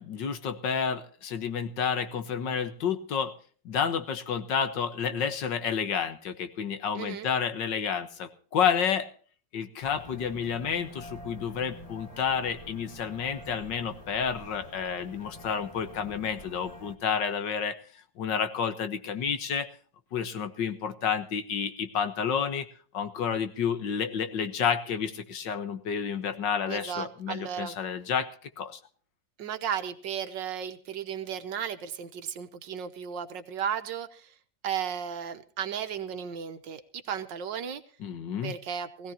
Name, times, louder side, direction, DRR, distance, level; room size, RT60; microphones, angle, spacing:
voice 1, 0.0-3.3 3.7-9.1 9.5-17.8 18.2-19.7 20.1-22.7 22.9-28.8 38.0-38.5, left 7 dB, 80° left, 9 dB, 1.9 m, -30 dB
voice 2, 7.0-7.3 26.7-27.8 29.4-34.3 34.6-37.8 38.4-39.1, right 8 dB, 85° right, 9 dB, 1.8 m, -35 dB
sound 1, 9.8-17.0, left 2 dB, 20° left, 1.4 m, -47 dB
20.5 x 16.0 x 2.9 m, 0.43 s
omnidirectional pair, 1.9 m